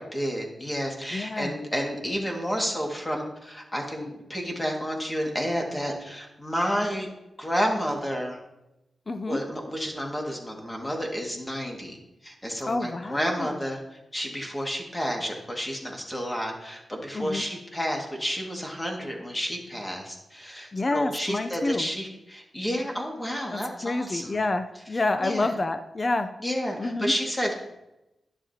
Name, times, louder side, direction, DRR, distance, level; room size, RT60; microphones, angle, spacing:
voice 1, 0.0-7.1 7.4-8.4 9.3-12.0 12.2-13.8 14.1-24.4 25.2-25.5 26.4-27.6, equal, 15° left, 0 dB, 2.0 m, -30 dB
voice 2, 1.1-1.6 9.1-9.4 12.7-13.5 17.1-17.4 20.7-21.9 23.5-26.3 26.8-27.1, left 2 dB, 30° left, 10 dB, 0.5 m, -28 dB
11.0 x 9.9 x 2.8 m, 0.93 s
wide cardioid pair, 100°, 0 cm